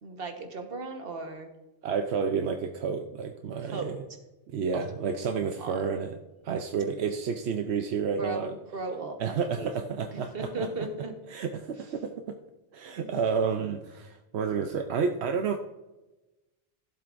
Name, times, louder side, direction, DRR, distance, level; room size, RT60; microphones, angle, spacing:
voice 1, 0.0-1.5 3.6-3.9 4.7-4.8 5.3-5.9 8.2-9.7 10.1-11.1, right 2 dB, 65° right, 4 dB, 1.5 m, -36 dB
voice 2, 1.8-4.0 4.5-6.2 6.4-8.5 9.2-10.7 11.3-12.4 12.7-15.6, right 6 dB, 85° right, 6 dB, 1.0 m, -30 dB
15.0 x 7.6 x 2.6 m, 1.0 s
omnidirectional pair, 1.1 m